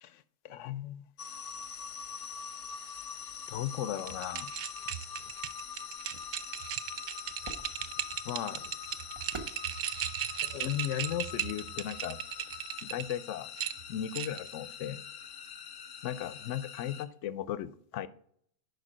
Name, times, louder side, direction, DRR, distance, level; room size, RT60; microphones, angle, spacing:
voice 1, 0.0-1.1 3.5-4.5 8.2-8.6 10.4-12.2 12.8-13.5 13.9-15.0 16.0-18.1, left 11 dB, 80° left, 0.9 m, -36 dB
sound 1, 1.2-17.0, left 7 dB, 50° left, 0.8 m, -44 dB
sound 2, 4.0-13.1 13.6-14.5, right 10 dB, 65° right, 0.4 m, -37 dB
sound 3, 5.3-11.6, right 2 dB, 25° right, 0.9 m, -52 dB
10.5 x 4.9 x 5.1 m
omnidirectional pair, 1.3 m